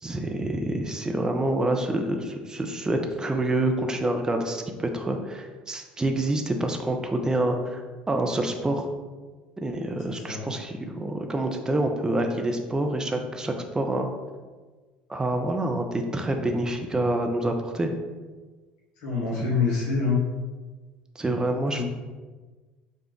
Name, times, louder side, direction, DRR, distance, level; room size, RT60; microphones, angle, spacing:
voice 1, 0.0-7.8 8.1-8.9 9.6-14.1 15.1-17.9 21.2-21.8, right 1 dB, 15° right, 4 dB, 0.6 m, -27 dB
voice 2, 10.1-10.5 19.0-20.2 21.7-21.8, left 5 dB, 65° left, -4 dB, 1.0 m, -26 dB
6.7 x 2.4 x 3.0 m, 1.3 s
figure-of-eight pair, 60°, 5 cm